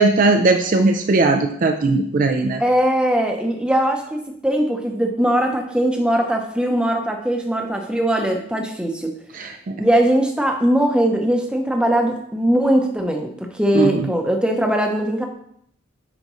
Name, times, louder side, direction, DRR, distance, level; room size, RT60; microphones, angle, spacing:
voice 1, 0.0-2.6 9.3-9.8 13.7-14.1, right 3 dB, 40° right, 5 dB, 0.4 m, -18 dB
voice 2, 2.6-9.1 9.8-15.2, right 1 dB, 5° right, 3 dB, 0.7 m, -20 dB
8.9 x 5.2 x 3.1 m, 0.71 s
head